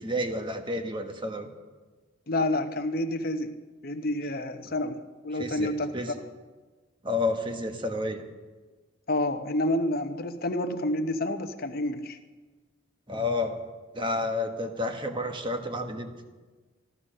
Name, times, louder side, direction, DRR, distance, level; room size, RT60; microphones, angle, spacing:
voice 1, 0.0-1.5 5.3-6.1 7.0-8.2 13.1-13.6 13.9-16.1, left 2 dB, 25° right, 5 dB, 1.3 m, -30 dB
voice 2, 2.3-3.5 3.8-5.0 5.2-5.9 9.1-12.2, left 1 dB, 50° left, 8 dB, 0.9 m, -29 dB
14.0 x 12.5 x 6.6 m, 1.3 s
head